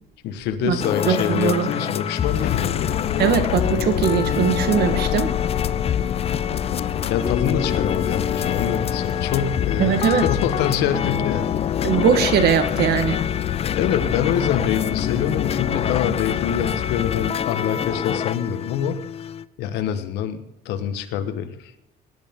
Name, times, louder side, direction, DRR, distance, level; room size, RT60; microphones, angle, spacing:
voice 1, 0.2-2.9 7.1-11.5 13.7-19.0 19.6-21.7, left 9 dB, 85° left, 9 dB, 1.4 m, -25 dB
sound 1, 0.8-19.4, left 8 dB, 35° left, 0.5 m, -26 dB
voice 2, 1.1-1.7 3.2-5.3 9.8-10.2 11.8-13.2, right 8 dB, 70° right, 11 dB, 1.5 m, -20 dB
sound 2, 2.2-17.3, left 12 dB, 65° left, 0.9 m, -28 dB
19.5 x 11.0 x 3.7 m, 0.83 s
cardioid pair, 110°, 17 cm